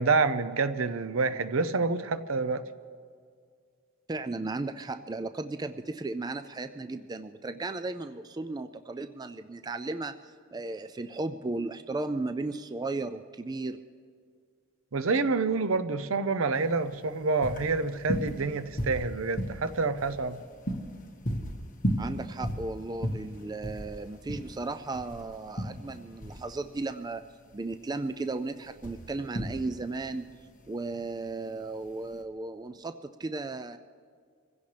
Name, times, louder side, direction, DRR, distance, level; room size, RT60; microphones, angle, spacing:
voice 1, 0.0-2.6 14.9-20.4, right 4 dB, 70° right, 13 dB, 0.7 m, -27 dB
voice 2, 4.1-13.8 22.0-27.2 27.5-30.3 30.7-33.8, right 3 dB, 20° right, 9 dB, 0.3 m, -35 dB
sound 1, 16.6-32.2, equal, 40° left, 1.5 m, -36 dB
26.0 x 16.0 x 3.4 m, 2.1 s
head